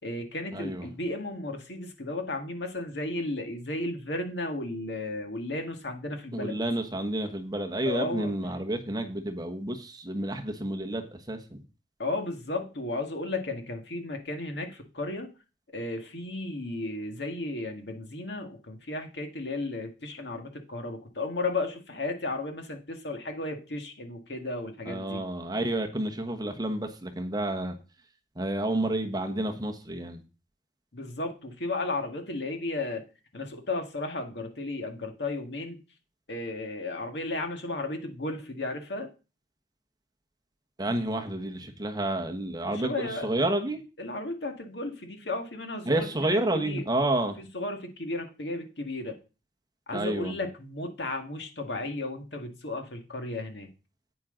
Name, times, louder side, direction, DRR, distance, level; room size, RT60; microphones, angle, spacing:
voice 1, 0.0-6.6 7.8-8.3 12.0-15.3 15.7-25.2 30.9-33.0 33.3-35.8 36.3-39.1 42.6-43.3 44.0-46.9 47.4-49.2 49.9-53.7, left 2 dB, 80° left, 4 dB, 2.0 m, -34 dB
voice 2, 0.5-0.9 6.3-11.6 24.9-27.7 28.4-30.2 40.8-43.8 45.9-47.4 49.9-50.4, right 1 dB, 20° right, 4 dB, 1.2 m, -30 dB
9.3 x 9.2 x 3.8 m, 0.31 s
head